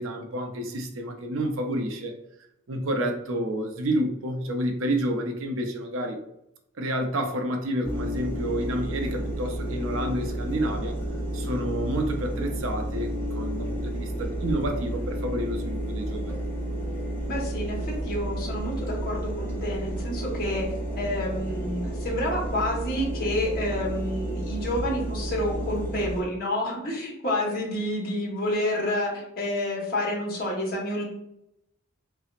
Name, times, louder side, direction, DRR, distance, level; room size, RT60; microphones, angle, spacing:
voice 1, 0.0-2.1 2.7-6.2 6.8-11.0 11.3-16.4, right 1 dB, 70° right, 4 dB, 0.5 m, -29 dB
sound 1, 7.8-26.2, right 1 dB, 10° left, 0.6 m, -31 dB
voice 2, 17.3-20.6 21.0-31.0, left 1 dB, 45° left, -3 dB, 1.2 m, -29 dB
5.5 x 2.0 x 2.5 m, 0.81 s
head